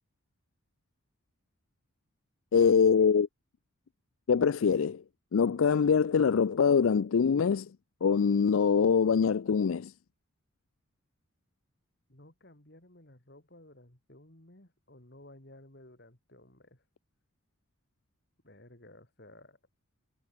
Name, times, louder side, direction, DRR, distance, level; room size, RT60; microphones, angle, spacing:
voice 1, 2.5-3.3 4.3-5.0 5.3-7.7 8.0-9.9, left 6 dB, 70° left, 0.4 m, -24 dB
voice 2, 12.1-16.8 18.4-19.6, left 1 dB, 50° left, 3.2 m, -55 dB
head